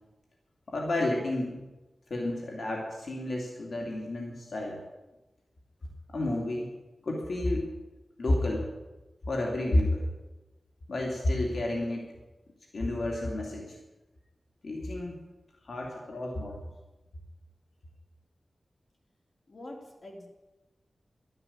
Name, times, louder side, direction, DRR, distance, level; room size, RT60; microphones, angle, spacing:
voice 1, 0.7-1.6 2.1-4.8 6.1-6.7 7.0-7.7 8.2-8.7 9.3-10.1 10.9-12.1 12.7-13.8 14.6-15.2 15.6-16.6, left 1 dB, 65° left, -1 dB, 2.7 m, -30 dB
voice 2, 19.5-20.3, left 1 dB, 50° left, 0 dB, 3.3 m, -45 dB
12.5 x 11.0 x 8.7 m, 1.1 s
wide cardioid pair, 105°, 0 cm